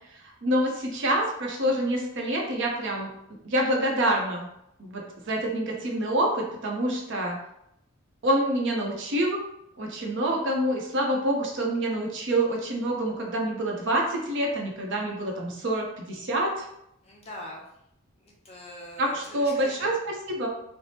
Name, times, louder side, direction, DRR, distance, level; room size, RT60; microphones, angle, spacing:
voice 1, 0.1-3.1 3.4-4.5 4.8-7.4 8.2-9.4 9.8-16.7 19.0-20.5, right 1 dB, 60° right, 0 dB, 0.7 m, -27 dB
voice 2, 17.0-17.6 18.2-19.9, left 1 dB, 30° left, -3 dB, 0.7 m, -43 dB
3.3 x 2.0 x 2.8 m, 0.79 s
head